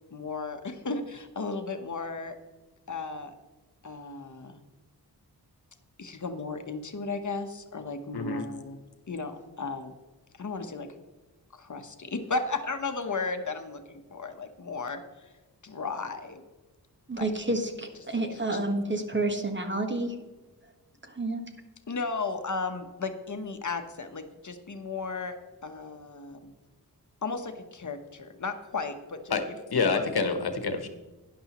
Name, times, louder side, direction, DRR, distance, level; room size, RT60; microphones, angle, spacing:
voice 1, 0.1-2.4 2.9-3.3 3.8-4.6 6.0-9.9 10.3-10.9 11.5-15.3 15.6-16.4 17.1-17.3 18.1-18.6 21.9-25.4 25.6-26.5 27.2-30.1, left 4 dB, 50° left, 1.0 m, -35 dB
voice 2, 8.1-8.4 29.3-29.4 29.7-30.9, left 4 dB, 70° left, 1.2 m, -27 dB
voice 3, 17.1-20.2 21.0-21.4, right 2 dB, 30° right, 1.4 m, -29 dB
12.5 x 10.5 x 3.0 m
wide cardioid pair, 80°, 39 cm